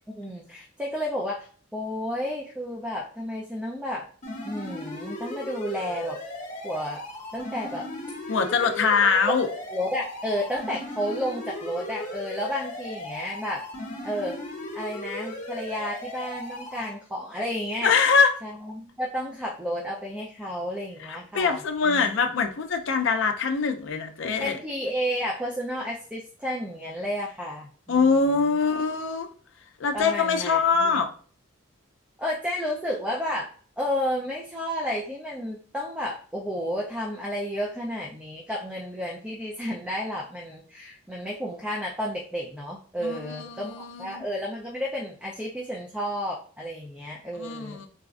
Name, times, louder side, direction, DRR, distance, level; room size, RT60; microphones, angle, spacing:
voice 1, 0.1-4.1 4.4-6.2 6.6-7.0 7.3-7.9 8.3-8.4 9.7-13.6 14.0-14.4 14.7-17.9 18.4-22.1 24.4-28.5 29.9-31.0 32.2-33.5 33.8-47.8, equal, 5° right, -2 dB, 0.4 m, -32 dB
sound 1, 4.2-16.9, left 1 dB, 35° left, 1.0 m, -37 dB
voice 2, 8.3-9.5 17.8-18.4 21.0-24.6 27.9-29.3 29.8-31.1 43.0-44.2 47.4-47.9, left 5 dB, 60° left, 5 dB, 0.4 m, -23 dB
4.0 x 2.4 x 2.4 m, 0.43 s
head